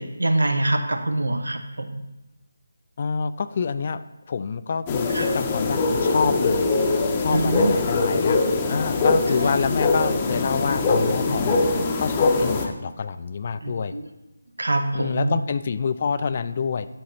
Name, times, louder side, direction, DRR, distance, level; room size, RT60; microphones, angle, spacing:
voice 1, 0.0-2.0 5.1-5.3 7.3-7.8 9.3-9.5 11.3-11.5 13.6-14.1 14.6-15.4, right 2 dB, 70° right, 7 dB, 0.9 m, -25 dB
voice 2, 3.0-4.0 4.3-6.7 7.2-11.6 12.0-13.9 14.9-16.9, left 5 dB, 40° left, 13 dB, 0.3 m, -27 dB
sound 1, 4.9-12.7, left 3 dB, 20° left, 0.8 m, -22 dB
7.6 x 5.6 x 4.1 m, 1.0 s
figure-of-eight pair, 155°, 0 cm